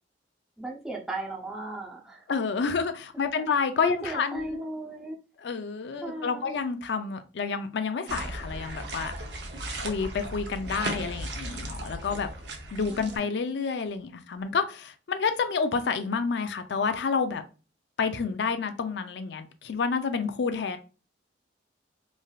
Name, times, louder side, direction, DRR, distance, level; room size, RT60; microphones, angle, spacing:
voice 1, 0.6-2.3 3.1-3.5 3.8-5.2 6.0-6.5 12.9-13.5, right 2 dB, 5° right, -2 dB, 0.5 m, -36 dB
voice 2, 2.3-4.6 5.4-9.1 9.8-12.3 12.7-17.4 18.0-20.8, left 5 dB, 65° left, 9 dB, 0.4 m, -29 dB
sound 1, 8.1-13.2, right 1 dB, 60° right, 0.6 m, -36 dB
3.2 x 2.5 x 2.3 m, 0.34 s
head